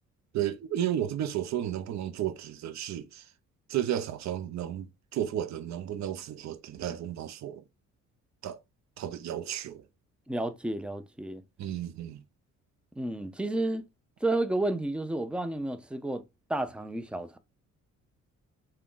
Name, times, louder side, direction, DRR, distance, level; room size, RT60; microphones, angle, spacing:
voice 1, 0.3-3.3 3.7-7.6 8.4-8.6 9.0-9.8 11.6-12.2, right 11 dB, 65° right, 0.6 m, -33 dB
voice 2, 10.3-11.4 13.0-13.9 14.2-16.2 16.5-17.4, right 2 dB, 5° right, 0.4 m, -31 dB
3.4 x 2.3 x 3.7 m
cardioid pair, 90°, 30 cm